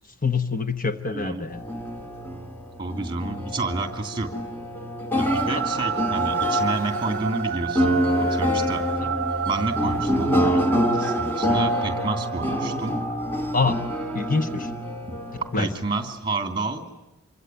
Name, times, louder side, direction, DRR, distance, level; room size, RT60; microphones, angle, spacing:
voice 1, 0.2-1.6 9.0-9.1 13.5-13.8 14.1-14.7 15.3-15.7, left 4 dB, 40° left, 8 dB, 1.2 m, -25 dB
voice 2, 1.1-1.5 2.8-4.3 5.1-8.8 9.4-13.0 15.1-15.2 15.6-17.0, right 2 dB, 20° right, 7 dB, 2.8 m, -30 dB
sound 1, 1.5-16.2, equal, 10° left, 2.1 m, -26 dB
sound 2, 5.3-14.7, right 8 dB, 45° right, 1.0 m, -31 dB
26.5 x 24.0 x 9.2 m, 0.92 s
head